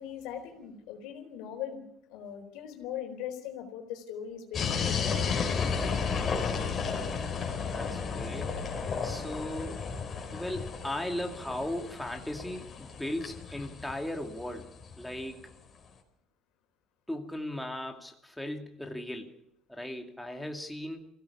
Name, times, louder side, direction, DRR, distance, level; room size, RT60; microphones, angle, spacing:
voice 1, 0.0-5.3, left 9 dB, 80° left, 5 dB, 4.1 m, -40 dB
sound 1, 4.5-15.2, left 5 dB, 40° left, 4.8 m, -33 dB
voice 2, 7.7-8.6 9.0-9.9 10.3-14.7 15.0-15.5 17.1-19.3 19.7-21.1, left 1 dB, 5° left, 2 dB, 2.5 m, -37 dB
24.5 x 16.5 x 7.1 m, 0.77 s
cardioid pair, 100°, 0 cm